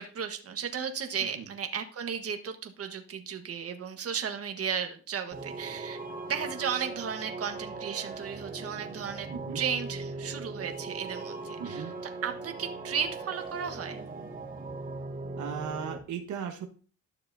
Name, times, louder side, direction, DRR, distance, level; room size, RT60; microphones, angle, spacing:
voice 1, 0.0-6.0 6.3-9.3 9.5-11.9 12.2-14.0, right 7 dB, 50° right, 6 dB, 1.4 m, -34 dB
sound 1, 5.3-16.0, right 3 dB, 30° right, 2.1 m, -39 dB
voice 2, 9.3-9.6 11.6-11.9 15.4-16.7, right 7 dB, 75° right, 4 dB, 1.3 m, -37 dB
12.5 x 6.7 x 2.7 m, 0.39 s
cardioid pair, 90°, 30 cm